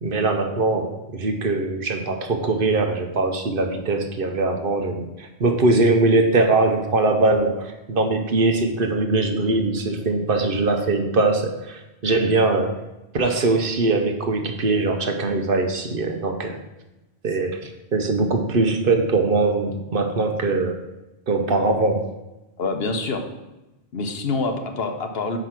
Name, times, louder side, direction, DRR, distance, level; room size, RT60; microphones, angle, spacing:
voice 1, 0.0-12.8 13.1-16.6 17.2-20.8 21.3-22.1, right 3 dB, 60° right, 5 dB, 1.0 m, -21 dB
voice 2, 22.6-23.2 23.9-25.4, left 3 dB, 70° left, 5 dB, 1.1 m, -26 dB
6.1 x 5.0 x 5.9 m, 0.97 s
omnidirectional pair, 1.1 m